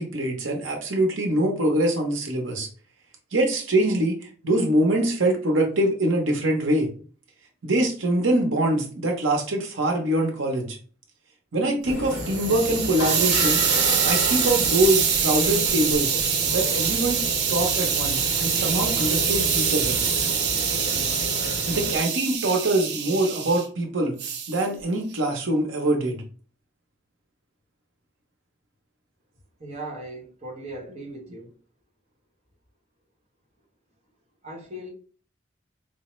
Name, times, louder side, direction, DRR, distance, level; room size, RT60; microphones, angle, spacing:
voice 1, 0.0-2.7 3.3-6.9 7.6-10.8 11.5-13.6 14.0-16.2 16.5-17.2 17.5-20.0 21.7-24.2 24.5-26.2, right 1 dB, 85° right, 0.8 m, -24 dB
sound 1, 11.8-21.9, left 2 dB, 55° left, 0.7 m, -32 dB
Hiss, 11.9-23.7 24.2-24.6, right 7 dB, 55° right, 0.5 m, -24 dB
voice 2, 29.6-31.5 34.4-34.9, right 1 dB, 35° right, 0.9 m, -38 dB
4.6 x 2.1 x 3.0 m
head